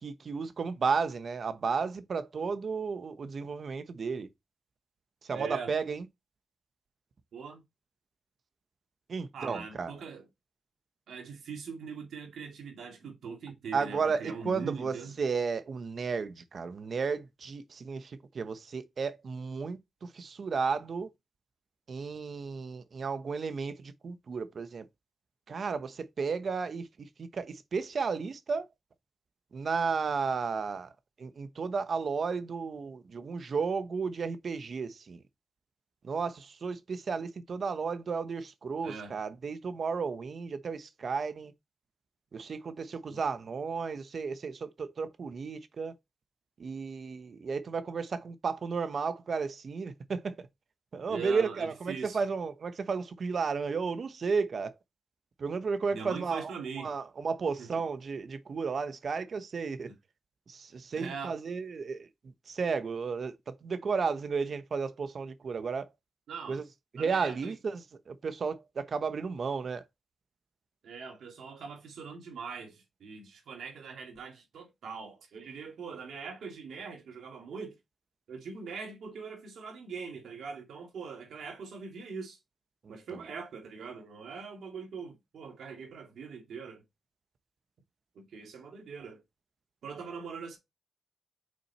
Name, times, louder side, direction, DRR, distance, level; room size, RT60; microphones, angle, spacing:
voice 1, 0.0-4.3 5.2-6.1 9.1-9.9 13.7-21.1 21.9-24.9 25.5-28.7 29.5-30.9 31.2-35.2 36.0-41.5 42.3-45.9 46.6-50.5 50.9-54.7 55.4-59.9 60.5-62.1 62.5-65.9 66.5-66.6 66.9-69.8 82.8-83.2, right 5 dB, 60° right, 1.0 m, -33 dB
voice 2, 5.3-5.7 7.3-7.6 9.3-10.3 11.1-15.1 38.8-39.1 43.1-43.3 51.1-52.2 55.9-56.9 57.6-57.8 60.9-61.3 66.3-66.6 67.0-67.5 70.8-77.7 78.3-82.4 82.9-86.8 88.1-89.2 89.8-90.6, right 5 dB, 85° right, 2.5 m, -42 dB
6.3 x 4.3 x 4.2 m
cardioid pair, 65°, 0 cm